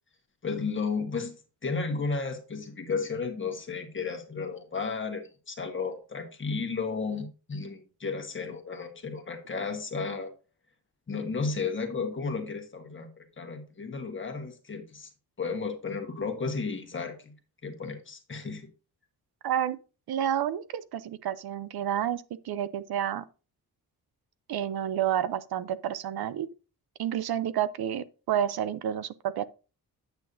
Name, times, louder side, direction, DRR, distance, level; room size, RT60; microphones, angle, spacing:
voice 1, 0.4-1.3 1.6-10.3 11.1-15.1 15.4-17.3 17.6-18.7, left 4 dB, 30° left, 1.4 m, -33 dB
voice 2, 19.4-19.8 20.1-23.2 24.5-26.5 27.0-29.5, right 10 dB, 75° right, 0.6 m, -30 dB
9.2 x 8.2 x 2.6 m
wide cardioid pair, 150°, 38 cm